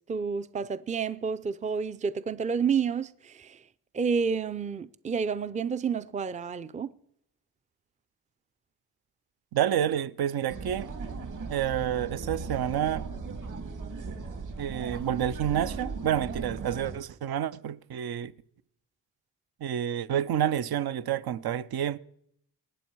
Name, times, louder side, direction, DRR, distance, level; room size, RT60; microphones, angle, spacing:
voice 1, 0.1-3.6 3.9-6.9, right 6 dB, 20° right, 0.5 m, -30 dB
voice 2, 9.5-10.9 11.5-13.1 14.6-18.3 19.6-22.0, right 10 dB, 70° right, 0.7 m, -29 dB
sound 1, 10.5-17.0, right 4 dB, 50° right, 2.3 m, -37 dB
19.5 x 9.1 x 4.6 m
cardioid pair, 95°, 40 cm